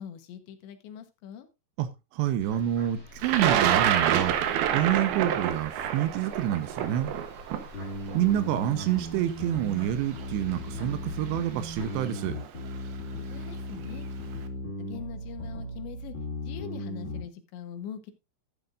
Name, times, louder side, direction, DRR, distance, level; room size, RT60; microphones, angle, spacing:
voice 1, 0.0-1.5 13.2-14.1 14.8-16.2 16.4-18.1, left 9 dB, 85° left, 3.5 m, -42 dB
voice 2, 1.8-7.1 8.1-12.4, right 12 dB, 90° right, 3.0 m, -28 dB
sound 1, 2.4-12.1, left 2 dB, 30° right, 3.8 m, -48 dB
Thunder, 3.2-9.2 10.2-10.3 11.4-11.6 12.0-12.4, right 10 dB, 75° right, 2.7 m, -27 dB
sound 2, 7.7-17.2, equal, 30° left, 2.7 m, -37 dB
12.5 x 9.7 x 2.5 m
omnidirectional pair, 5.0 m